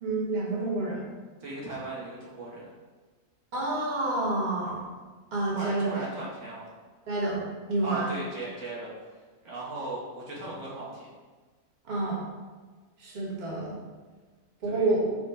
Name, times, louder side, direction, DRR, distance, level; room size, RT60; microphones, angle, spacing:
voice 1, 0.0-1.1 3.5-4.8 5.3-5.9 7.1-7.4 7.7-8.1 11.9-12.2 13.0-13.8 14.6-15.1, right 2 dB, 35° right, -5 dB, 1.0 m, -28 dB
voice 2, 1.4-2.7 5.5-6.7 7.8-8.9 9.4-11.1 14.7-14.9, right 2 dB, 65° right, -5 dB, 1.2 m, -37 dB
5.1 x 2.1 x 4.8 m, 1.4 s
omnidirectional pair, 1.4 m